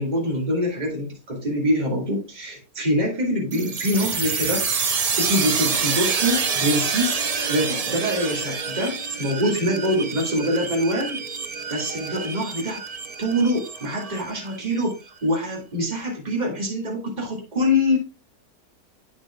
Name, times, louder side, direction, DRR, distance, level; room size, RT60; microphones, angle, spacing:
voice 1, 0.0-4.7 5.2-11.2 11.7-12.8 13.2-18.0, equal, 30° right, -1 dB, 2.0 m, -24 dB
sound 1, 3.5-14.9, right 5 dB, 65° right, 0.3 m, -27 dB
8.3 x 7.4 x 2.2 m, 0.32 s
omnidirectional pair, 1.7 m